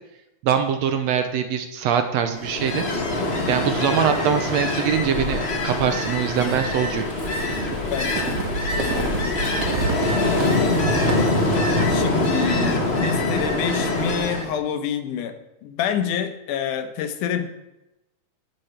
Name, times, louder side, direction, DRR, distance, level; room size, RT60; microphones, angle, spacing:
voice 1, 0.4-3.1 3.5-7.1, right 8 dB, 75° right, 8 dB, 1.7 m, -23 dB
Ocean, 2.3-14.5, left 2 dB, 60° left, 0.6 m, -24 dB
sound 1, 6.3-14.2, right 4 dB, 50° right, 1.3 m, -31 dB
voice 2, 7.9-9.6 11.9-15.4 15.6-17.5, left 8 dB, 90° left, 8 dB, 2.4 m, -28 dB
11.5 x 8.9 x 4.3 m, 0.94 s
omnidirectional pair, 3.5 m